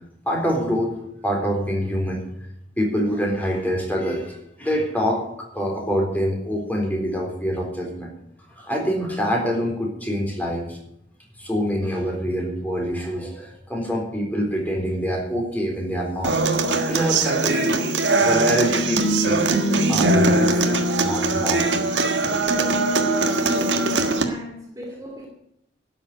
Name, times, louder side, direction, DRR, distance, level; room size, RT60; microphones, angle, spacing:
voice 1, 0.3-1.0 1.2-2.2 2.8-8.1 8.6-10.8 11.4-16.4 16.6-17.8 18.2-19.4 19.9-21.6 22.3-23.0 23.5-23.6, equal, 10° left, -1 dB, 3.9 m, -25 dB
Human voice / Acoustic guitar, 16.2-24.2, right 2 dB, 75° right, 1.6 m, -21 dB
voice 2, 23.2-25.3, equal, 20° right, -1 dB, 2.6 m, -38 dB
12.0 x 7.5 x 9.4 m, 0.76 s
head